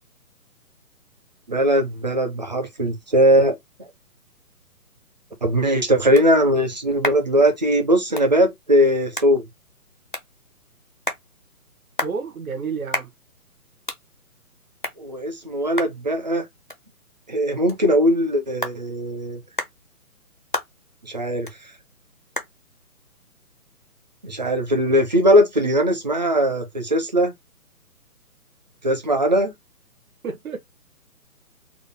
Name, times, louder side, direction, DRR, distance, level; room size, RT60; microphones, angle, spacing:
voice 1, 1.5-3.6 5.4-9.4 15.0-16.4 17.3-19.4 21.0-21.5 24.2-27.3 28.8-29.5, equal, 30° right, 0.7 m, -19 dB
sound 1, 8.1-24.6, left 1 dB, 35° left, 0.4 m, -37 dB
voice 2, 12.0-13.1 30.2-30.6, right 5 dB, 65° right, 1.1 m, -30 dB
3.7 x 2.1 x 3.3 m
hypercardioid pair, 175°, 45 cm